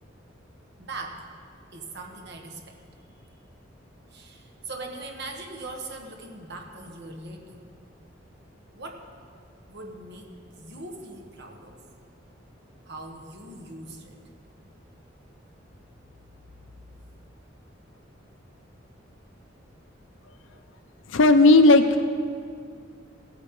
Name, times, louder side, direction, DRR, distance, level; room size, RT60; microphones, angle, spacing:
voice 1, 0.8-1.3 1.7-2.8 4.1-7.6 8.7-9.1 9.7-11.8 12.8-14.2 17.9-18.0 20.5-20.6, right 2 dB, 60° right, 3 dB, 1.3 m, -40 dB
voice 2, 21.1-22.0, left 2 dB, 75° left, 8 dB, 0.6 m, -15 dB
17.0 x 8.9 x 3.7 m, 2.1 s
head